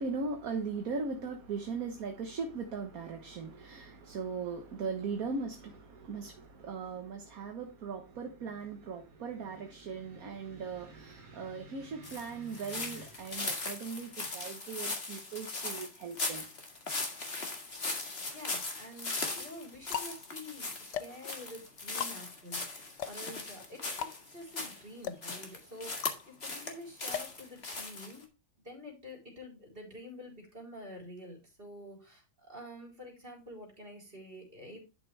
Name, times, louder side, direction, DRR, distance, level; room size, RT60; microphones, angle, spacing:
voice 1, 0.0-16.4, right 4 dB, 55° right, 1.6 m, -39 dB
sound 1, 12.0-24.8 25.2-26.7 27.0-28.2, left 3 dB, 35° left, 2.1 m, -39 dB
sound 2, 18.0-18.7 19.4-28.1, left 9 dB, 75° left, 1.4 m, -42 dB
voice 2, 18.3-28.3 28.6-34.9, left 1 dB, 30° right, 4.3 m, -48 dB
11.5 x 6.2 x 3.3 m
omnidirectional pair, 1.9 m